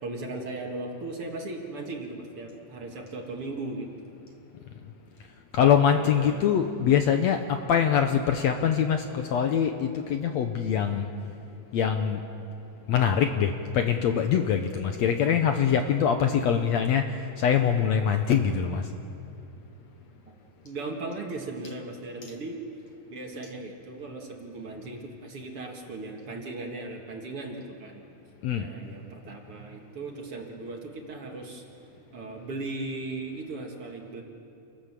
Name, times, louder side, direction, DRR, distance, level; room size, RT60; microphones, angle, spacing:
voice 1, 0.0-4.1 5.9-6.4 20.3-20.4 20.6-22.6 23.1-28.0 28.5-31.6 32.1-34.2, right 2 dB, 45° right, 1 dB, 2.6 m, -37 dB
voice 2, 5.5-11.1 11.7-12.2 12.9-17.1 17.4-18.9 28.4-28.7, left 8 dB, 70° left, 6 dB, 1.8 m, -23 dB
28.0 x 18.5 x 7.5 m, 2.8 s
omnidirectional pair, 3.8 m